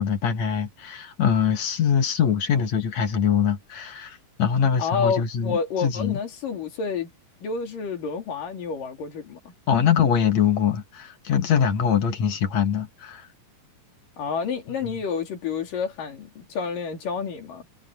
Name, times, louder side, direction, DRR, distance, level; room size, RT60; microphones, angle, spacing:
voice 1, 0.0-6.2 9.7-13.3 14.8-14.9, left 7 dB, 60° left, 2.7 m, -23 dB
voice 2, 4.8-7.1 7.4-9.5 14.2-17.7, left 6 dB, 80° left, 4.8 m, -29 dB
omnidirectional pair, 3.8 m